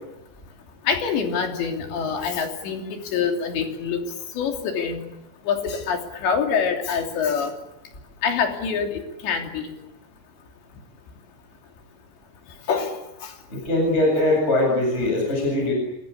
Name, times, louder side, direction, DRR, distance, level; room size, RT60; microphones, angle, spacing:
voice 1, 0.9-4.0 4.4-5.0 5.5-7.5 8.2-9.7 12.7-12.9, left 6 dB, 80° left, 3 dB, 5.3 m, -25 dB
voice 2, 13.5-15.7, left 1 dB, 15° left, 0 dB, 8.0 m, -21 dB
28.0 x 21.5 x 8.6 m, 0.91 s
omnidirectional pair, 5.0 m